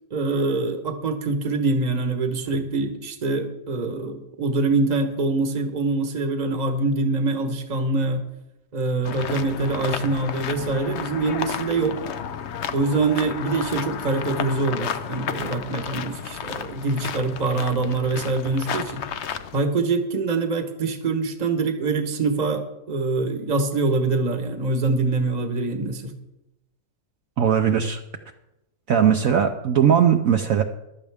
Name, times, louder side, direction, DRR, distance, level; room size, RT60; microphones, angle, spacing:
voice 1, 0.1-8.2 8.7-12.0 12.7-19.0 19.5-26.1, right 3 dB, 30° right, 7 dB, 1.1 m, -24 dB
sound 1, 9.0-19.6, left 7 dB, 60° left, 0.8 m, -32 dB
voice 2, 27.4-28.0 28.9-30.6, right 8 dB, 65° right, 5 dB, 1.0 m, -19 dB
15.0 x 12.0 x 3.5 m, 0.94 s
omnidirectional pair, 1.8 m